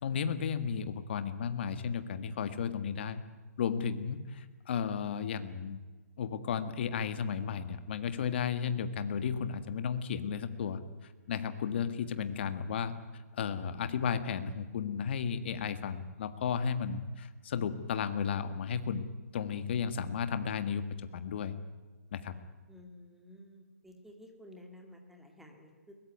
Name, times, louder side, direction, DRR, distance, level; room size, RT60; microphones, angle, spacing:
voice 1, 0.0-3.2 3.6-5.8 6.2-10.8 11.3-12.9 13.3-19.1 19.3-20.8 21.1-21.5 22.1-22.3, left 7 dB, 40° left, 11 dB, 1.7 m, -34 dB
voice 2, 22.7-25.9, left 1 dB, ahead, 3 dB, 2.2 m, -53 dB
22.0 x 20.0 x 9.4 m, 1.3 s
hypercardioid pair, 170°, 9 cm